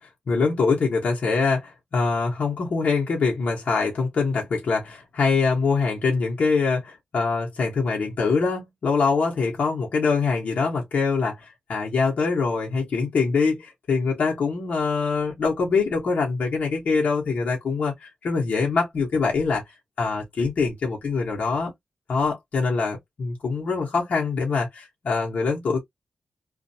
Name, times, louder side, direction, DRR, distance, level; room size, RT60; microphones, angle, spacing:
voice 1, 0.3-19.6 20.0-21.7 22.1-25.8, left 4 dB, 70° left, 1.1 m, -24 dB
2.5 x 2.4 x 2.7 m
cardioid pair, 80°, 2 cm